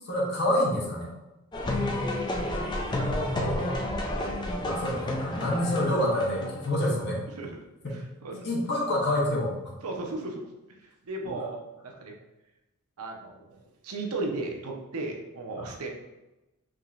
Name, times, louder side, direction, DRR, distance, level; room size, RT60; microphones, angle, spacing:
voice 1, 0.1-1.1 4.6-7.3 7.8-8.0 8.4-9.5 15.6-15.7, left 1 dB, 50° left, -3 dB, 1.0 m, -27 dB
sound 1, 1.5-6.7, left 1 dB, 20° left, 0.4 m, -30 dB
voice 2, 1.6-2.1 2.8-4.6 7.4-7.6 7.9-8.5 9.8-10.5 11.0-12.1 13.0-15.9, right 2 dB, 75° right, 2 dB, 0.6 m, -36 dB
4.7 x 2.8 x 2.4 m, 0.99 s
head